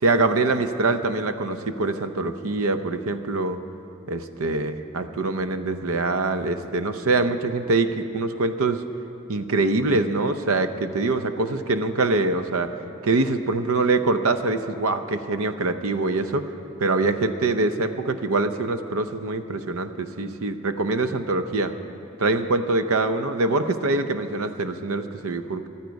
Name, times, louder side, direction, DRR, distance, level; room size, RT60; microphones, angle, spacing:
voice 1, 0.0-3.6 4.1-8.8 9.3-12.7 13.0-16.5 16.8-21.7 22.2-25.7, right 3 dB, 70° right, 10 dB, 0.7 m, -24 dB
14.0 x 13.0 x 5.2 m, 2.8 s
head